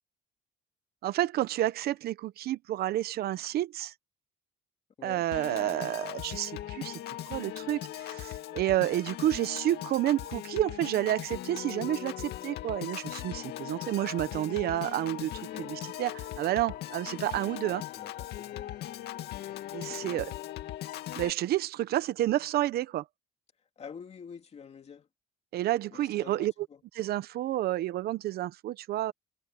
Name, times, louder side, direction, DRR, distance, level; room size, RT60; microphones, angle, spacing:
voice 1, 1.0-3.9 5.0-7.0 7.3-15.3 15.6-17.8 19.7-20.3 21.2-23.0 25.5-26.5 26.9-29.1, right 14 dB, 70° right, 0.9 m, -30 dB
voice 2, 5.0-5.3 15.5-15.7 17.9-18.7 19.8-20.3 23.8-25.1 25.9-26.8, left 6 dB, 40° left, 2.3 m, -47 dB
Piano / Organ, 5.3-21.3, left 13 dB, 75° left, 2.2 m, -39 dB
cardioid pair, 110°, 17 cm